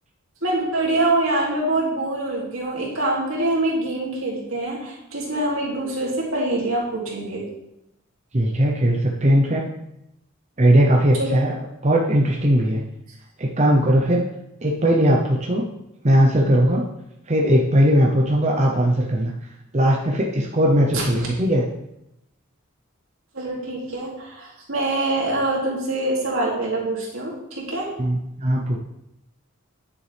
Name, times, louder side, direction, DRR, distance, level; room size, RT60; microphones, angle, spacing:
voice 1, 0.4-7.4 11.2-11.4 20.9-21.0 23.3-27.9, right 2 dB, 75° right, -3 dB, 2.7 m, -24 dB
voice 2, 8.3-9.6 10.6-11.6 11.8-12.8 13.4-14.2 14.6-15.7 16.0-16.8 17.3-19.3 19.7-21.6 28.0-28.8, equal, 30° right, -1 dB, 0.8 m, -18 dB
9.6 x 7.1 x 3.4 m, 0.85 s
head